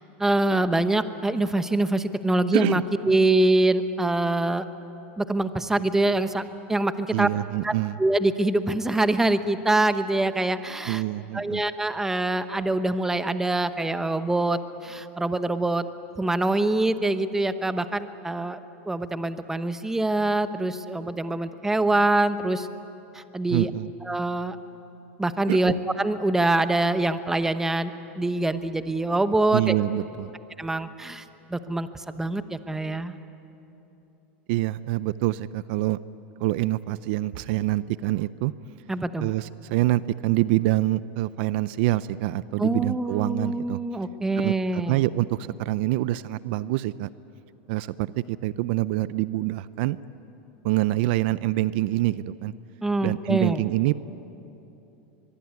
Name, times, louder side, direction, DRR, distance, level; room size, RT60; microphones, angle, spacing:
voice 1, 0.2-4.6 5.2-6.4 6.7-7.3 7.6-7.7 8.0-11.0 11.3-15.8 16.2-18.6 18.9-22.7 23.1-23.7 24.0-24.6 25.2-29.7 30.6-31.2 31.5-33.2 38.9-39.3 42.6-45.0 52.8-53.6, right 2 dB, 5° right, 11 dB, 1.0 m, -24 dB
voice 2, 7.1-8.0 10.9-11.6 23.5-23.9 25.5-25.8 29.5-30.3 34.5-36.0 36.4-38.5 39.2-43.8 44.4-47.1 47.7-50.0 50.6-52.5 53.0-53.9, right 17 dB, 60° right, 17 dB, 0.5 m, -26 dB
23.5 x 23.0 x 9.5 m, 3.0 s
supercardioid pair, 135°, 6 cm